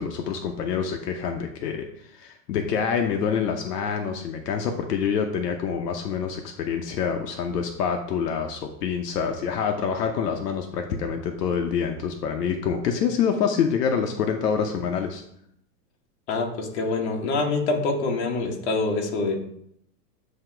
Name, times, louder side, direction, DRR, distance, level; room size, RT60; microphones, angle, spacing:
voice 1, 0.0-15.2, left 7 dB, 70° left, 4 dB, 0.8 m, -26 dB
voice 2, 16.3-19.4, left 3 dB, 40° left, 1 dB, 1.1 m, -25 dB
7.9 x 2.9 x 4.5 m, 0.73 s
supercardioid pair, 180°, 50 cm